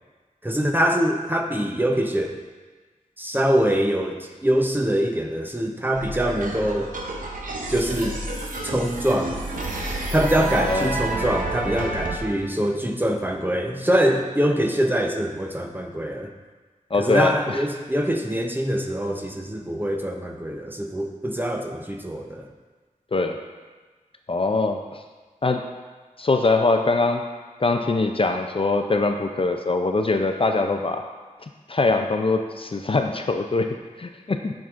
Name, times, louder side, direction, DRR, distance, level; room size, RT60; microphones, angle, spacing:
voice 1, 0.4-2.4 3.2-6.9 7.7-8.2 8.6-9.3 10.1-16.3 17.0-22.5, right 1 dB, 15° right, 3 dB, 0.7 m, -24 dB
sound 1, 5.9-12.2, right 2 dB, 80° right, 0.8 m, -29 dB
voice 2, 10.5-10.9 16.9-17.6 23.1-23.4 24.3-25.0 25.4-25.7 26.2-27.2 27.6-31.0 31.7-34.5, left 3 dB, 40° left, 5 dB, 0.4 m, -23 dB
9.3 x 5.9 x 2.5 m, 1.3 s
wide cardioid pair, 75°, 14 cm